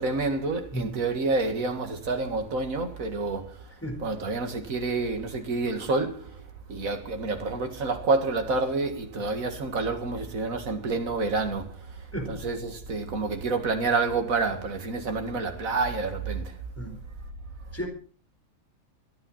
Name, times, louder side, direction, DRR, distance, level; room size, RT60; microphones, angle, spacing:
voice 1, 0.0-3.7 4.0-16.6, right 3 dB, 75° right, 2.4 m, -28 dB
voice 2, 0.7-0.9 3.8-4.0 12.1-12.3 16.8-16.9 17.7-17.9, right 1 dB, 10° left, 4.4 m, -32 dB
26.0 x 9.2 x 4.2 m
omnidirectional pair, 1.4 m